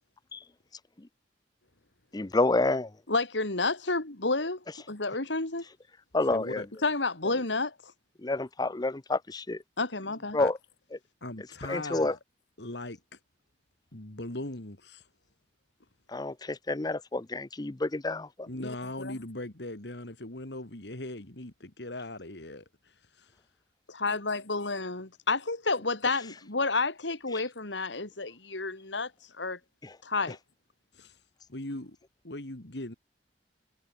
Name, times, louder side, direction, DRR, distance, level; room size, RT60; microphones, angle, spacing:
voice 1, 2.1-2.9 6.1-6.6 8.2-9.6 10.3-10.6 11.7-12.1 16.1-18.5, left 2 dB, 20° left, 0.6 m, -29 dB
voice 2, 3.1-5.6 6.8-7.9 9.8-10.4 18.6-19.2 24.0-29.1 29.4-29.6 30.0-30.4, left 3 dB, 85° left, 3.3 m, -30 dB
voice 3, 6.3-6.7 10.4-10.5 11.2-12.2 12.6-13.2 13.9-15.1 18.5-23.4 30.9-31.2 31.5-32.0 32.2-32.9, left 1 dB, 70° left, 2.8 m, -39 dB
head